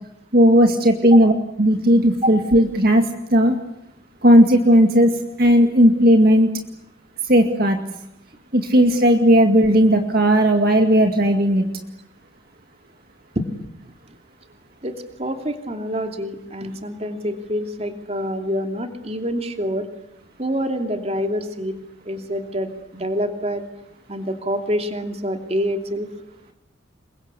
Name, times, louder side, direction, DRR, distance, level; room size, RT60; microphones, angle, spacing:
voice 1, 0.3-1.3 1.6-3.6 4.2-6.5 7.3-7.8 8.5-11.6, equal, 50° right, 5 dB, 2.1 m, -15 dB
voice 2, 14.8-19.9 20.4-21.8 22.1-23.6 24.1-26.1, equal, 30° right, 6 dB, 2.8 m, -26 dB
28.0 x 23.0 x 8.4 m, 0.83 s
head